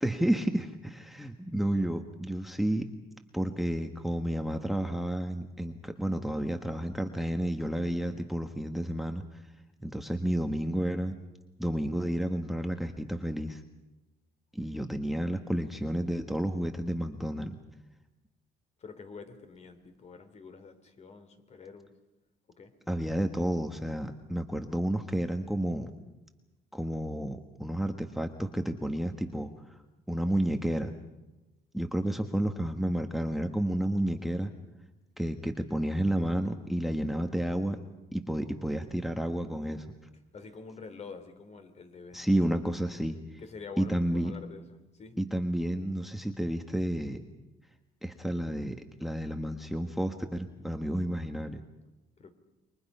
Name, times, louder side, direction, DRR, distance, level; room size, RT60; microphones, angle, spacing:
voice 1, 0.0-2.9 3.3-9.2 9.8-11.1 11.6-13.6 14.5-17.6 22.9-25.9 26.7-29.5 30.1-30.9 31.7-34.5 35.2-37.8 38.1-39.8 42.1-43.4 43.8-44.3 45.2-47.2 48.0-51.6, right 1 dB, ahead, 6 dB, 1.4 m, -31 dB
voice 2, 18.8-21.9 22.6-22.7 40.3-42.4 43.4-44.6 44.9-45.2 52.2-52.3, left 5 dB, 40° left, 9 dB, 3.2 m, -47 dB
29.0 x 23.5 x 5.6 m, 1.0 s
cardioid pair, 110°, 17 cm